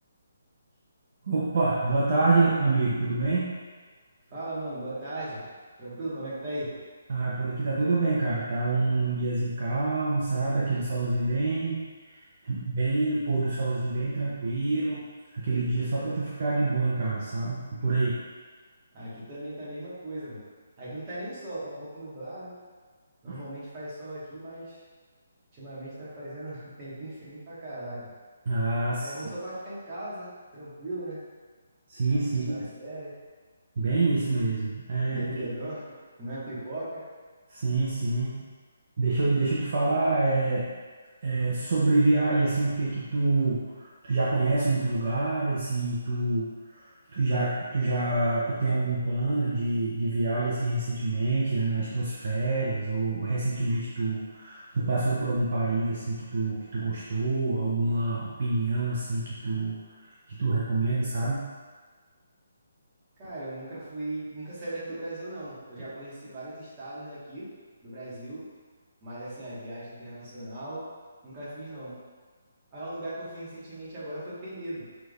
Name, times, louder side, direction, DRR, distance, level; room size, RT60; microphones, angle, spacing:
voice 1, 1.2-3.5 7.1-11.8 12.4-15.0 15.3-18.2 23.3-23.4 28.5-29.1 31.9-32.6 33.8-35.3 37.5-38.4 39.0-40.7 41.2-46.8 47.1-59.8 60.4-61.4, right 2 dB, 45° right, -7 dB, 0.7 m, -26 dB
voice 2, 4.3-5.4 5.8-6.7 18.9-20.4 20.8-22.5 23.2-24.8 25.5-28.1 29.0-31.2 32.4-33.1 35.1-35.8 36.2-37.0 63.2-67.4 67.8-68.4 69.0-70.8 71.2-71.9 72.7-74.8, right 1 dB, 20° right, -11 dB, 1.3 m, -38 dB
5.9 x 3.4 x 2.4 m, 1.5 s
hypercardioid pair, 175°, 0 cm